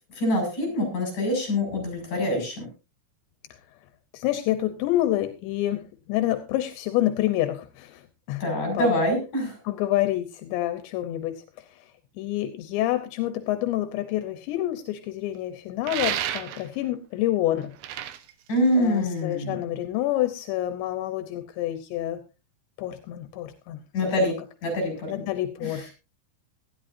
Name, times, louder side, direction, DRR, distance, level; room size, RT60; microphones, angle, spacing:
voice 1, 0.2-2.7 8.4-9.6 18.5-19.6 23.9-24.3 24.6-25.1 25.6-25.9, left 1 dB, 45° left, 3 dB, 7.5 m, -25 dB
voice 2, 4.1-8.4 8.7-8.9 9.6-11.9 12.2-17.7 18.8-22.2 22.8-23.8 24.2-24.3 25.1-25.9, left 14 dB, 85° left, 8 dB, 3.2 m, -28 dB
sound 1, 15.8-16.8 17.6-19.3, right 11 dB, 90° right, 3.5 m, -31 dB
18.5 x 13.5 x 2.7 m, 0.31 s
omnidirectional pair, 5.1 m